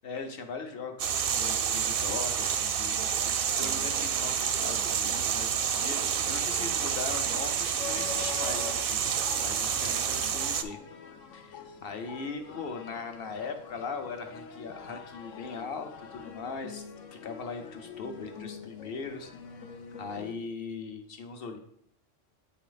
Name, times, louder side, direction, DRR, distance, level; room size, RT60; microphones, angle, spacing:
voice 1, 0.0-9.1 9.4-10.8 11.3-16.8 17.1-19.6 20.0-21.6, left 4 dB, 55° left, 6 dB, 1.0 m, -40 dB
sound 1, 1.0-10.6, right 8 dB, 60° right, 0.6 m, -29 dB
sound 2, 7.8-20.3, left 6 dB, 90° left, 1.1 m, -45 dB
8.2 x 4.1 x 4.0 m, 0.68 s
omnidirectional pair, 1.3 m